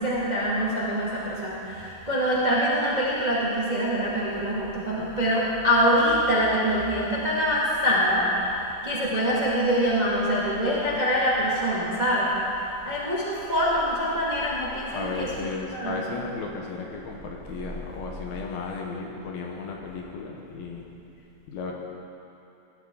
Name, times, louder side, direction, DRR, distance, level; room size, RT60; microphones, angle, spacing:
voice 1, 0.0-15.5 15.7-16.0, equal, 20° right, -7 dB, 1.0 m, -25 dB
voice 2, 14.9-20.8 21.5-21.7, left 4 dB, 70° left, 0 dB, 2.7 m, -34 dB
19.5 x 13.0 x 4.0 m, 2.9 s
omnidirectional pair, 4.9 m